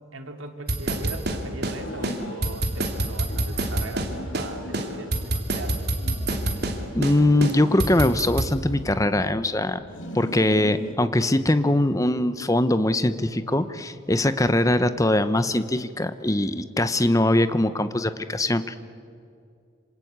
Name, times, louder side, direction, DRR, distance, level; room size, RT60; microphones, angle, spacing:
voice 1, 0.1-5.9, right 2 dB, 85° right, 5 dB, 2.8 m, -39 dB
sound 1, 0.7-1.8 2.0-2.2 2.4-4.1 4.3-4.5 4.7-6.8 7.0-7.2 7.4-8.5, right 2 dB, 50° right, 2.9 m, -26 dB
sound 2, 1.6-2.9 3.3-5.3 5.7-7.0 7.4-9.3 9.8-11.0, left 1 dB, 75° left, 3.2 m, -41 dB
voice 2, 6.9-9.8 10.1-18.8, left 1 dB, 15° left, 11 dB, 0.9 m, -22 dB
27.0 x 27.0 x 8.2 m, 2.4 s
head